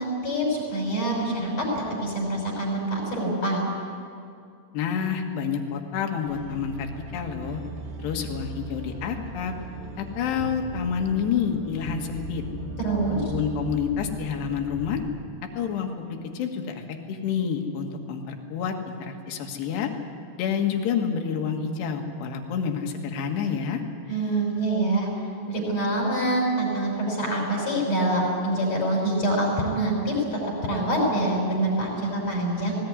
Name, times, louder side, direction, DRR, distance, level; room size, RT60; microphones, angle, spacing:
voice 1, 0.0-3.6 12.8-13.2 24.1-25.1 25.5-32.7, right 1 dB, 40° left, -4 dB, 6.3 m, -25 dB
voice 2, 4.7-7.6 8.0-9.5 10.0-12.4 13.1-15.0 15.6-19.9 20.4-23.8, left 7 dB, 80° left, 3 dB, 3.8 m, -28 dB
sound 1, 6.2-15.0, right 2 dB, 70° right, 4.1 m, -38 dB
19.0 x 18.5 x 9.6 m, 2.4 s
omnidirectional pair, 5.0 m